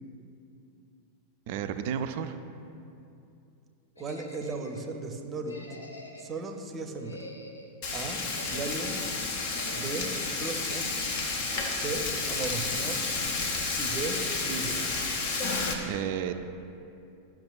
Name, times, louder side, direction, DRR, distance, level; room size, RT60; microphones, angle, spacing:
voice 1, 1.5-2.4 15.8-16.3, right 8 dB, 50° right, 9 dB, 0.3 m, -32 dB
sound 1, 4.0-4.9 5.4-6.4 6.9-7.7 8.2-9.0 9.5-10.2, left 1 dB, 80° left, 0.7 m, -46 dB
voice 2, 4.0-5.7 6.2-7.2 7.9-8.2 8.5-9.0 9.7-11.0 11.7-13.1 13.8-14.9, right 3 dB, 20° right, 5 dB, 0.7 m, -36 dB
Frying (food), 7.8-15.7, left 3 dB, 45° left, 0.9 m, -31 dB
12.0 x 5.9 x 2.4 m, 2.7 s
figure-of-eight pair, 90°, 0 cm